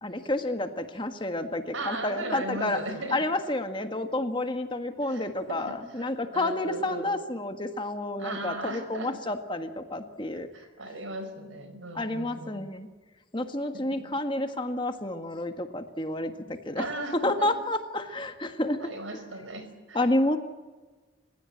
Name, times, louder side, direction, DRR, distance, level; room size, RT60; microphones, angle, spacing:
voice 1, 0.0-2.8 3.1-10.5 12.0-12.9 13.3-16.9 17.1-18.8 19.9-20.4, left 1 dB, 25° left, 7 dB, 1.6 m, -30 dB
voice 2, 1.7-3.2 5.1-5.3 5.6-7.1 8.2-9.2 10.5-12.7 13.7-14.0 16.8-17.5 18.8-20.0, right 2 dB, 90° right, 8 dB, 5.1 m, -37 dB
29.5 x 16.5 x 8.6 m, 1.3 s
head